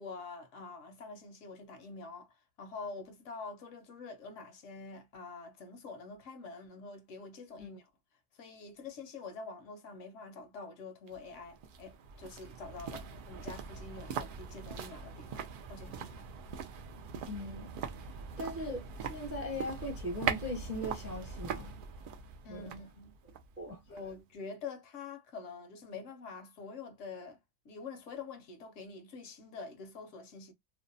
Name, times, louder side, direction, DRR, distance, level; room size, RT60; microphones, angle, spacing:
voice 1, 0.0-7.9 8.3-15.4 15.7-16.3 22.4-23.1 23.7-27.4 27.6-30.5, left 4 dB, 70° left, 0.9 m, -46 dB
sound 1, 11.1-24.2 24.5-24.6, right 6 dB, 70° right, 0.5 m, -41 dB
voice 2, 17.3-17.7 18.4-21.7 22.5-22.8 23.6-24.0, left 1 dB, 15° right, 0.5 m, -39 dB
2.6 x 2.0 x 2.5 m
omnidirectional pair, 1.4 m